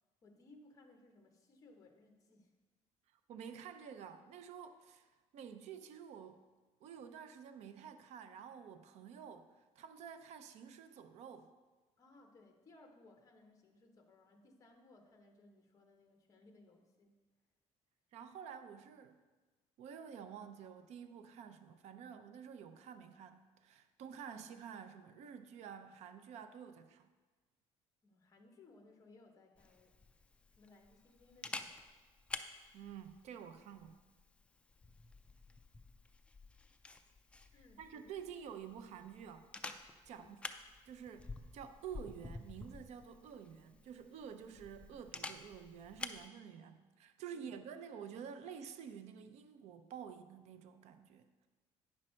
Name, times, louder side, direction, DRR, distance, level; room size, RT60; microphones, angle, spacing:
voice 1, 0.2-2.5 12.0-17.2 28.0-29.9 30.6-31.9 37.5-38.2 40.1-40.4 47.3-47.6, left 2 dB, 25° left, 4 dB, 1.0 m, -63 dB
voice 2, 3.3-6.4 6.8-11.5 18.1-19.2 19.8-27.1 32.7-34.0 37.8-39.5 40.1-40.4 40.8-51.5, right 7 dB, 65° right, 9 dB, 0.5 m, -50 dB
Camera, 29.6-46.3, left 3 dB, 10° left, 0.3 m, -51 dB
9.6 x 6.2 x 4.3 m, 1.3 s
cardioid pair, 170°, 12 cm